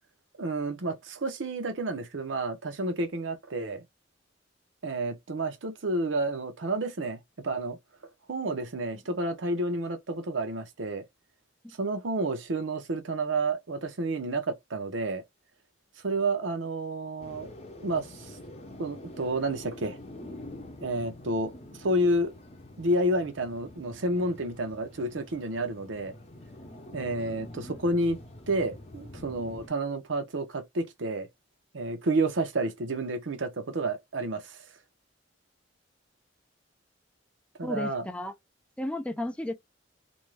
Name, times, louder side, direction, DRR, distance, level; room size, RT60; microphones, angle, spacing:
voice 1, 0.4-3.8 4.8-7.2 7.4-7.8 8.3-11.0 11.8-15.2 16.0-17.5 17.8-18.1 18.8-20.0 20.8-21.5 21.8-22.3 22.8-26.1 26.9-28.2 28.5-31.3 31.7-34.6 37.6-38.1, right 2 dB, 80° right, 0.7 m, -30 dB
sound 1, 17.2-29.7, left 1 dB, 35° left, 0.7 m, -46 dB
voice 2, 37.6-38.3 38.8-39.5, left 1 dB, 5° left, 0.3 m, -33 dB
2.6 x 2.2 x 3.1 m
head